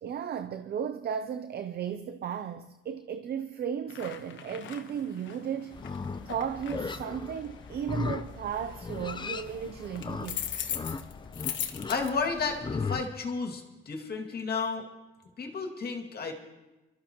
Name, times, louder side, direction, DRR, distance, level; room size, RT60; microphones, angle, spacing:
voice 1, 0.0-5.8 6.3-10.4, right 8 dB, 55° right, 0.7 m, -35 dB
sound 1, 3.9-12.8, left 9 dB, 70° left, 1.2 m, -41 dB
Livestock farm animals working animals, 5.7-13.0, left 4 dB, 25° left, 0.7 m, -37 dB
voice 2, 11.9-14.9 15.4-16.3, left 4 dB, 50° left, 2.3 m, -32 dB
24.0 x 13.5 x 3.0 m
cardioid pair, 90°, 20 cm